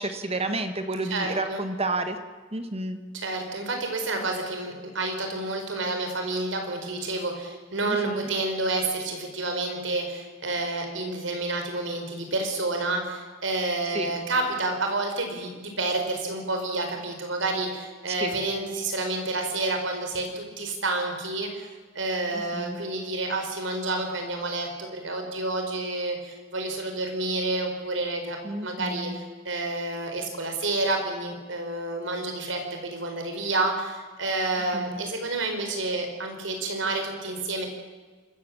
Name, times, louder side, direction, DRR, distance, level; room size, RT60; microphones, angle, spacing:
voice 1, 0.0-2.2 2.5-3.0 7.8-8.3 13.9-14.1 18.2-18.4 22.3-22.8 28.4-29.2 34.7-35.0, right 2 dB, 35° right, 8 dB, 1.6 m, -31 dB
voice 2, 1.1-1.6 3.1-21.7 21.9-28.4 28.6-37.7, right 2 dB, 90° right, 4 dB, 4.6 m, -29 dB
25.0 x 15.0 x 7.4 m, 1.4 s
head